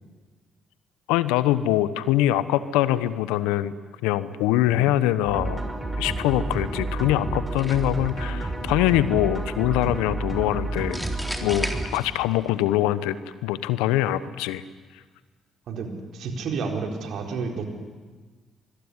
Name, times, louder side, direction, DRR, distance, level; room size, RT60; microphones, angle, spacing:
voice 1, 1.1-3.7 4.0-5.6 6.0-11.0 11.4-13.2 13.4-14.6, left 13 dB, 80° left, 15 dB, 1.0 m, -23 dB
sound 1, 5.2-11.9, right 2 dB, 15° right, 5.9 m, -30 dB
sound 2, 7.6-8.1 10.9-12.5, equal, 5° left, 3.9 m, -34 dB
voice 2, 15.7-17.7, right 4 dB, 65° right, 3 dB, 4.4 m, -31 dB
25.0 x 22.0 x 9.8 m, 1.4 s
hypercardioid pair, 50°, 0 cm